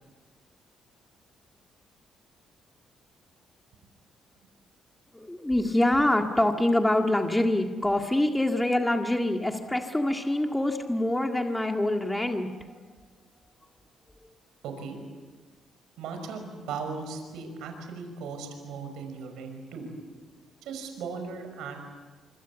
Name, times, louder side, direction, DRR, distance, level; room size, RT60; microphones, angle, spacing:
voice 1, 5.1-12.7, left 1 dB, 10° left, 4 dB, 1.8 m, -25 dB
voice 2, 14.6-15.0 16.0-19.9 20.6-21.8, right 5 dB, 85° right, 5 dB, 5.5 m, -37 dB
26.0 x 25.0 x 8.2 m, 1.4 s
cardioid pair, 90°, 0 cm